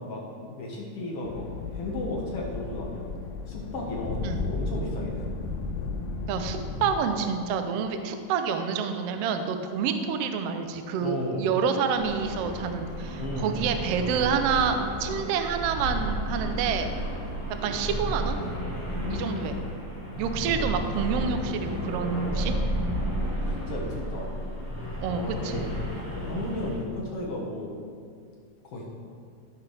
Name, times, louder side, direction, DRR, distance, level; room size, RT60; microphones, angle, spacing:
voice 1, 0.0-3.1 3.5-5.3 11.0-11.5 13.2-13.6 18.9-19.5 23.1-23.4 23.7-24.3 25.1-25.7 26.1-27.7 28.6-28.9, left 2 dB, 55° left, -3 dB, 2.2 m, -34 dB
sound 1, 1.2-6.9, left 3 dB, 85° left, 2.2 m, -34 dB
voice 2, 6.3-16.9 17.6-18.4 19.1-19.5 20.2-22.5 25.0-25.7, right 6 dB, 80° right, 7 dB, 1.4 m, -28 dB
sound 2, 11.9-26.8, equal, 10° right, 1.1 m, -32 dB
15.0 x 5.8 x 3.4 m, 2.2 s
omnidirectional pair, 3.5 m